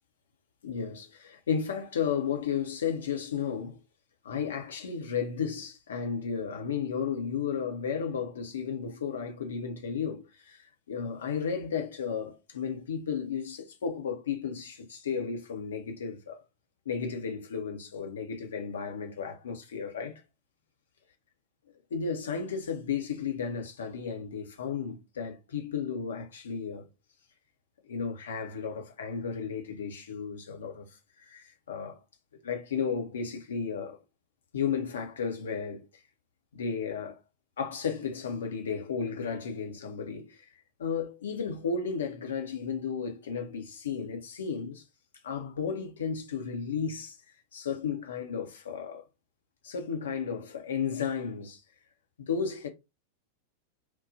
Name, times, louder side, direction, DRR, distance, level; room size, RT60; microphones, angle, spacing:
voice 1, 0.6-3.8 4.2-16.4 16.9-20.2 21.9-26.9 27.8-32.0 32.4-34.0 34.5-35.9 36.5-37.2 37.6-40.4 40.8-44.8 45.2-47.2 47.5-49.0 49.6-51.6 52.2-52.7, left 6 dB, 65° left, 0.7 m, -33 dB
4.5 x 2.2 x 2.6 m
figure-of-eight pair, 90°, 0 cm